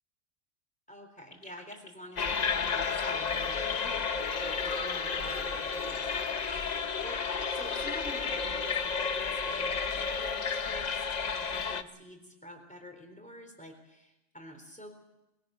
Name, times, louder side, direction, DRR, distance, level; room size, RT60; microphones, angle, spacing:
voice 1, 0.9-7.2 7.5-15.0, equal, 5° left, 4 dB, 3.9 m, -48 dB
sound 1, 1.2-8.8, left 2 dB, 60° left, 2.7 m, -51 dB
sound 2, 2.2-11.8, left 5 dB, 40° left, 0.8 m, -32 dB
22.0 x 17.0 x 7.7 m, 0.98 s
omnidirectional pair, 1.3 m